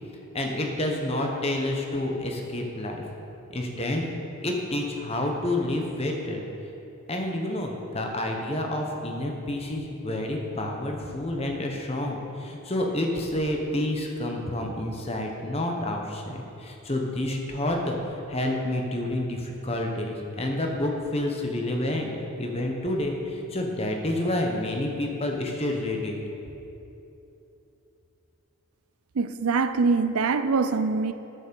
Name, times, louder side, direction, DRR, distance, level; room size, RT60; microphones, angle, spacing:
voice 1, 0.3-3.0 3.5-4.1 4.4-6.4 7.1-18.0 18.3-22.1 22.4-26.2, left 1 dB, 30° left, 2 dB, 1.0 m, -29 dB
voice 2, 29.2-31.1, right 4 dB, 85° right, 11 dB, 0.5 m, -23 dB
8.8 x 7.1 x 6.9 m, 2.9 s
head